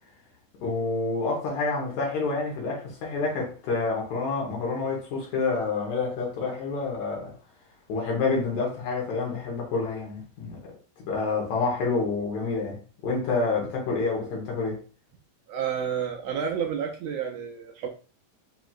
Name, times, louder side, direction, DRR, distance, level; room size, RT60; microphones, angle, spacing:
voice 1, 0.6-7.3 7.9-10.7 11.0-14.8, left 4 dB, 75° left, 2.5 m, -28 dB
voice 2, 15.5-17.9, right 7 dB, 80° right, 1.6 m, -30 dB
5.8 x 2.9 x 2.4 m
omnidirectional pair, 3.3 m